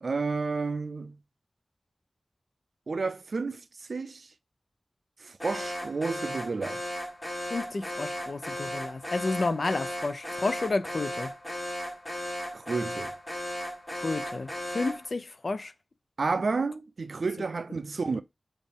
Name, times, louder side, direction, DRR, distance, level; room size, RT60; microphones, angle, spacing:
voice 1, 0.0-1.2 2.9-4.3 5.2-6.9 12.5-13.1 16.2-18.2, right 4 dB, 75° right, 0.4 m, -31 dB
Alarm, 5.4-15.1, equal, 20° left, 1.5 m, -36 dB
voice 2, 7.5-11.3 13.9-15.7, left 3 dB, 65° left, 0.4 m, -31 dB
4.1 x 2.5 x 3.4 m
wide cardioid pair, 70°, 0 cm